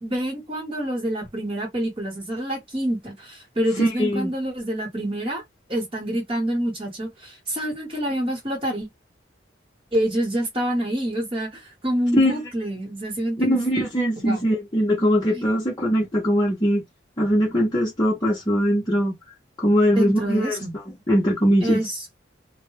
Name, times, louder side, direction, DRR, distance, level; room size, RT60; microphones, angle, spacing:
voice 1, 0.0-5.4 5.7-8.9 9.9-13.6 14.2-14.4 15.3-15.5 19.9-20.8 21.6-22.0, right 1 dB, 30° right, 1.0 m, -27 dB
voice 2, 3.8-4.3 12.1-12.3 13.4-16.8 17.2-19.1 19.6-20.6 21.1-21.8, equal, 20° left, 0.6 m, -21 dB
2.2 x 2.0 x 3.1 m
head